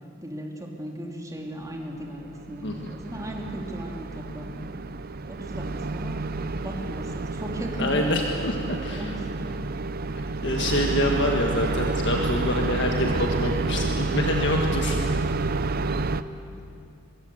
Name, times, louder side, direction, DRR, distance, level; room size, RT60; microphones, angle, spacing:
voice 1, 0.2-4.8 5.3-6.2 6.5-8.0 8.9-9.2 16.5-16.6, equal, 15° right, 1 dB, 2.8 m, -37 dB
sound 1, 2.2-16.2, right 3 dB, 45° right, 0.7 m, -29 dB
voice 2, 2.6-3.0 7.8-9.1 10.4-15.3, left 1 dB, 60° left, 2 dB, 1.7 m, -26 dB
23.5 x 22.5 x 7.9 m, 2.6 s
head